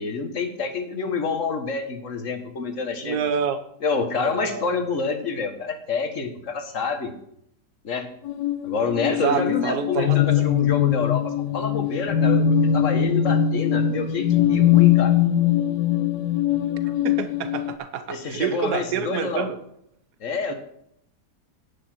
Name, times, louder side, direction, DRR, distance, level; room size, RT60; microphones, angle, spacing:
voice 1, 0.0-3.2 3.8-7.1 7.8-8.1 8.6-15.1 18.1-19.5 20.2-20.5, left 4 dB, 50° left, 7 dB, 1.6 m, -27 dB
voice 2, 3.0-3.6 4.2-4.7 9.2-10.2 16.8-19.6 20.5-20.6, right 7 dB, 70° right, 10 dB, 1.5 m, -27 dB
sound 1, 8.3-17.8, left 10 dB, 80° left, 1.3 m, -21 dB
10.0 x 10.0 x 4.5 m, 0.72 s
omnidirectional pair, 1.9 m